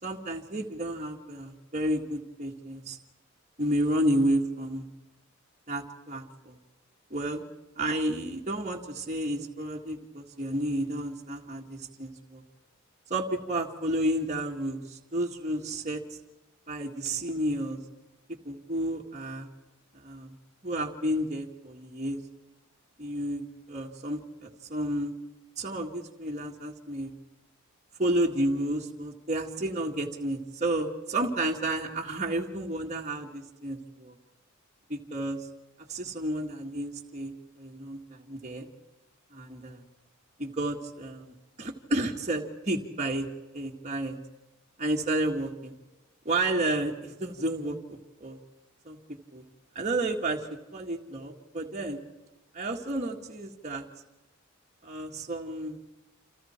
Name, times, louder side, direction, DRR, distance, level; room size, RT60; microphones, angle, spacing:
voice 1, 0.0-3.0 3.6-4.9 5.7-6.6 7.1-7.4 7.8-12.4 13.1-16.0 16.7-17.8 18.4-19.5 19.9-20.3 20.6-22.2 23.0-25.1 25.6-27.1 28.0-34.2 34.9-35.5 35.9-38.7 39.3-39.9 40.4-43.3 43.5-44.2 44.8-45.7 46.3-48.4 48.9-49.0 49.3-49.4 49.8-52.0 52.5-53.8 54.8-55.8, right 1 dB, 35° right, -1 dB, 1.9 m, -31 dB
28.5 x 27.5 x 4.5 m, 1.1 s
head